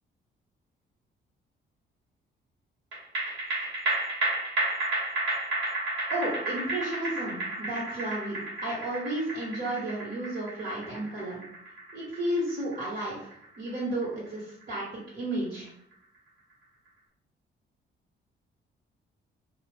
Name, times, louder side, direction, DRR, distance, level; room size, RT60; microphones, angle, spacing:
sound 1, 2.9-15.6 15.9-16.0, right 2 dB, 80° right, 1.1 m, -33 dB
voice 1, 6.1-11.4 11.9-14.8 15.1-15.7, right 1 dB, 50° right, -8 dB, 1.3 m, -33 dB
2.8 x 2.4 x 3.4 m, 0.71 s
cardioid pair, 90°, 20 cm